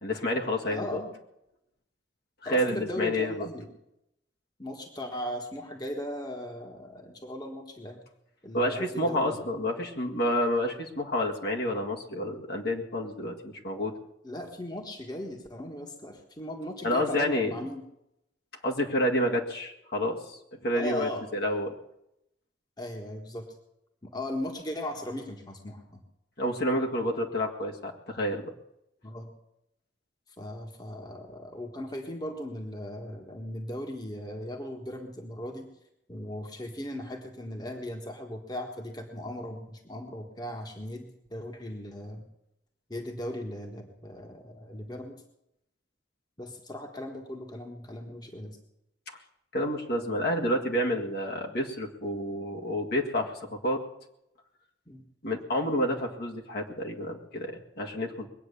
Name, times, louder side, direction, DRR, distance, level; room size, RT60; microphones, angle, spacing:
voice 1, 0.0-1.0 2.4-3.5 8.5-13.9 16.8-17.5 18.6-21.7 26.4-28.5 49.5-53.8 55.2-58.3, equal, 60° left, 1 dB, 1.9 m, -29 dB
voice 2, 0.6-1.1 2.4-3.7 4.6-8.0 8.4-9.4 14.2-17.8 20.7-21.2 22.8-23.5 24.0-26.0 29.0-29.3 30.4-35.7 36.1-42.2 42.9-45.2 46.4-48.6 54.9-55.0, left 1 dB, 20° left, 3 dB, 1.5 m, -38 dB
21.5 x 9.1 x 6.9 m, 0.84 s
head